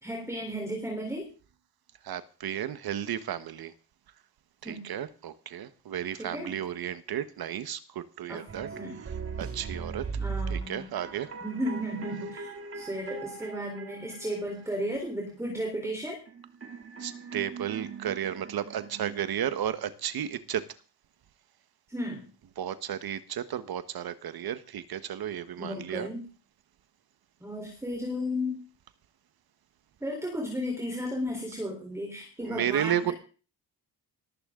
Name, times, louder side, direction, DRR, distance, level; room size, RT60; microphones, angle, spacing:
voice 1, 0.0-1.3 4.6-4.9 6.2-6.6 8.3-8.4 8.8-9.0 10.2-10.9 11.4-12.5 12.7-16.2 21.9-22.3 25.6-26.3 27.4-28.6 30.0-33.1, equal, 5° right, -1 dB, 4.1 m, -34 dB
voice 2, 2.0-3.7 4.6-8.7 9.4-10.0 10.5-11.3 17.0-20.6 22.6-26.1 32.4-33.1, right 10 dB, 60° right, 12 dB, 1.4 m, -33 dB
sound 1, 8.5-14.9 16.3-19.9, right 5 dB, 35° right, 2.1 m, -39 dB
19.5 x 14.5 x 3.9 m, 0.37 s
wide cardioid pair, 155°, 41 cm